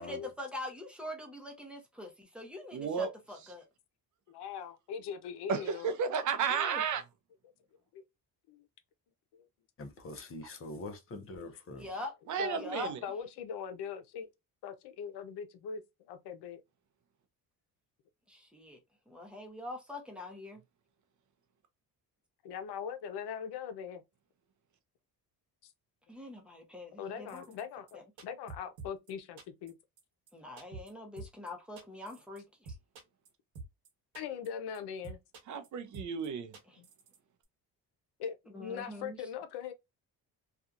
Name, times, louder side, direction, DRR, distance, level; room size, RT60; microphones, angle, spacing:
voice 1, 0.0-3.6 6.5-6.8 11.7-12.1 12.6-12.9 18.3-18.8 19.1-20.6 26.1-27.4 27.9-28.0 30.3-32.4 36.7-36.8 38.5-39.2, left 1 dB, 5° right, 0.8 m, -43 dB
voice 2, 2.7-3.1 5.5-7.0 12.3-13.0 35.5-36.5, right 6 dB, 50° right, 0.5 m, -32 dB
voice 3, 4.3-5.9 7.9-8.0 8.5-8.6 9.3-9.5 12.4-12.7 13.0-14.3 14.6-16.6 22.4-24.0 25.6-25.7 27.0-29.7 34.1-35.2 36.8-36.9 38.2-39.7, left 7 dB, 85° left, 0.7 m, -41 dB
voice 4, 9.8-11.9, left 2 dB, 35° left, 0.6 m, -44 dB
sound 1, 27.3-27.6 27.9-28.0 28.2-29.1 29.4-29.7 30.0-30.1 30.3-30.4 30.6-30.9 31.2-31.5 31.8-32.4 32.6-33.3 33.5-33.9 34.1-34.5 34.7-34.8 35.0-35.7 35.9-36.3 36.5-37.2 37.4-37.5, right 3 dB, 85° right, 1.0 m, -47 dB
2.7 x 2.4 x 2.4 m
cardioid pair, 125°, 39 cm